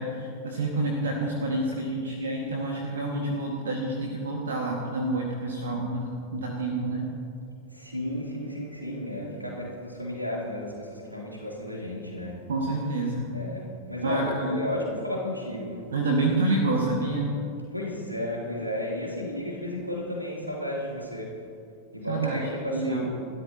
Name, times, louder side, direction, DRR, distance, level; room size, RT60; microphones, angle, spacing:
voice 1, 0.0-7.1 12.5-13.3 14.0-14.6 15.9-17.4 22.1-22.4 22.7-23.0, right 2 dB, 65° right, 0 dB, 1.9 m, -28 dB
voice 2, 7.7-12.4 13.3-15.9 17.7-21.3 21.9-23.1, left 1 dB, 90° right, -3 dB, 3.4 m, -33 dB
29.5 x 13.0 x 3.0 m, 2.5 s
figure-of-eight pair, 90°, 0 cm